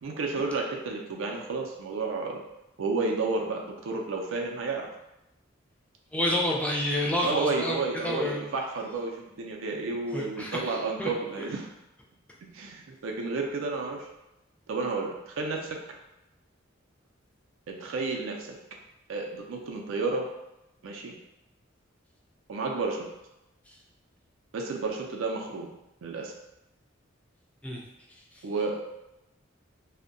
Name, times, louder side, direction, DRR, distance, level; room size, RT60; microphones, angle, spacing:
voice 1, 0.0-2.4 2.8-4.9 7.2-11.7 12.5-14.1 14.7-15.7 17.7-18.6 19.1-20.3 20.8-21.1 22.5-23.1 24.5-25.7 26.0-26.3 28.4-28.8, right 3 dB, 85° right, 1 dB, 0.4 m, -31 dB
voice 2, 6.1-8.5 10.1-11.1 27.6-27.8, left 1 dB, 5° left, -2 dB, 0.4 m, -29 dB
2.6 x 2.1 x 2.5 m, 0.91 s
head